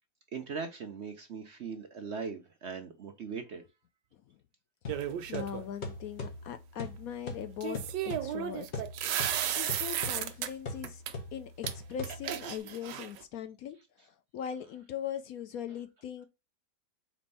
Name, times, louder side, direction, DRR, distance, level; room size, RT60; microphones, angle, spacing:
voice 1, 0.3-3.6, right 5 dB, 55° right, 0.8 m, -39 dB
sound 1, 4.8-12.6, left 3 dB, 40° left, 1.4 m, -42 dB
sound 2, 4.9-5.6 7.6-10.5 10.8-11.1 11.7-11.8 12.0-13.2, right 10 dB, 90° right, 1.3 m, -34 dB
voice 2, 5.3-8.8 9.6-11.0 11.3-13.8 14.3-16.3, left 9 dB, 70° left, 0.9 m, -40 dB
4.4 x 4.0 x 5.4 m
omnidirectional pair, 1.8 m